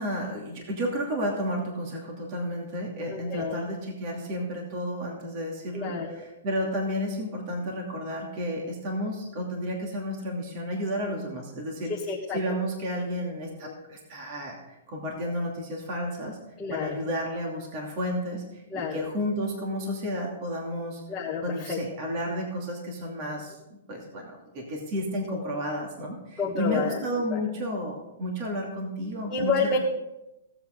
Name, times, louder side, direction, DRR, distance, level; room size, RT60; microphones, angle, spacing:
voice 1, 0.0-11.9 12.3-16.4 16.7-21.0 21.4-23.6 23.9-29.8, equal, 40° right, 0 dB, 2.6 m, -32 dB
voice 2, 3.1-3.7 5.7-6.2 11.9-12.4 13.6-13.7 16.6-17.0 18.7-19.0 21.1-21.8 25.3-25.4 26.4-27.0 27.3-27.4 29.3-29.8, left 4 dB, 15° left, -6 dB, 1.5 m, -29 dB
16.5 x 8.1 x 3.8 m, 0.92 s
hypercardioid pair, 155°, 0 cm